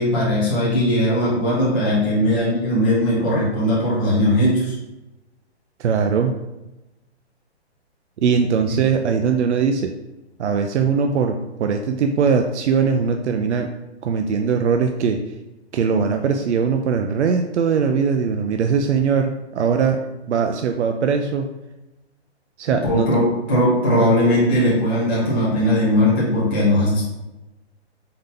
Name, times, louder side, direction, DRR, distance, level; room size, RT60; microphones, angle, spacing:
voice 1, 0.0-4.7 22.8-27.0, left 1 dB, 10° left, -9 dB, 0.3 m, -19 dB
voice 2, 5.8-6.3 8.2-9.9 10.4-13.7 14.0-15.2 15.7-20.0 20.3-21.4 22.6-23.1, right 6 dB, 85° right, 5 dB, 0.5 m, -20 dB
3.8 x 2.6 x 3.6 m, 0.98 s
hypercardioid pair, 145°, 34 cm